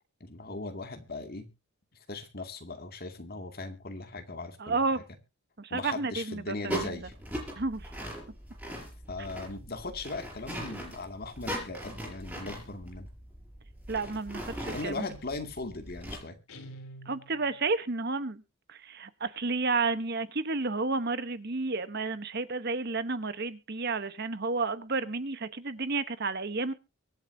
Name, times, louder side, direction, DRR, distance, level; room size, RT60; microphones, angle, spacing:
voice 1, 0.2-1.5 2.1-5.0 5.7-7.1 9.1-13.1 14.7-16.4, left 2 dB, 45° left, 6 dB, 2.4 m, -39 dB
voice 2, 4.6-5.0 5.6-7.0 7.6-7.9 13.9-15.1 17.1-18.4 18.7-26.7, right 3 dB, 50° right, 13 dB, 1.0 m, -31 dB
sound 1, 6.7-16.2, equal, 5° right, 5.1 m, -40 dB
Guitar, 16.5-17.8, right 1 dB, 80° left, 3.1 m, -47 dB
24.0 x 8.2 x 2.7 m, 0.28 s
head